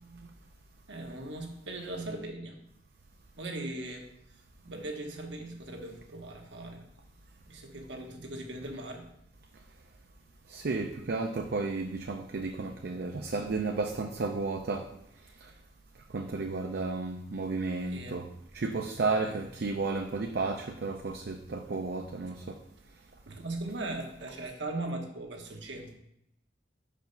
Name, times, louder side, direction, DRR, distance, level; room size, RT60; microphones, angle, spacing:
voice 1, 0.9-2.6 3.4-6.8 7.4-9.1 17.9-18.2 19.2-19.8 23.3-25.9, right 2 dB, 80° right, 2 dB, 1.2 m, -39 dB
voice 2, 10.5-14.8 15.4-15.5 16.1-18.3 18.5-22.6, right 3 dB, 60° right, 4 dB, 0.5 m, -33 dB
5.6 x 5.1 x 5.3 m, 0.79 s
head